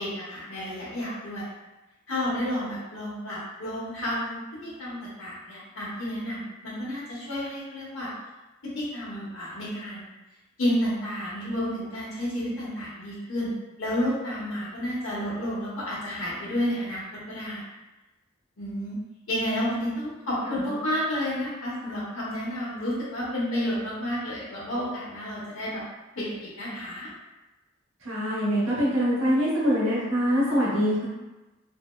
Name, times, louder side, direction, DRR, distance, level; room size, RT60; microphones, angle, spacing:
voice 1, 0.0-1.5 2.1-8.1 8.7-10.0 10.6-13.5 13.8-17.0 17.3-17.6 18.6-19.0 19.3-25.8 26.1-27.1, equal, 70° left, -7 dB, 1.0 m, -31 dB
voice 2, 20.4-20.8 28.0-31.1, equal, 65° right, -7 dB, 0.9 m, -24 dB
2.6 x 2.0 x 2.2 m, 1.1 s
head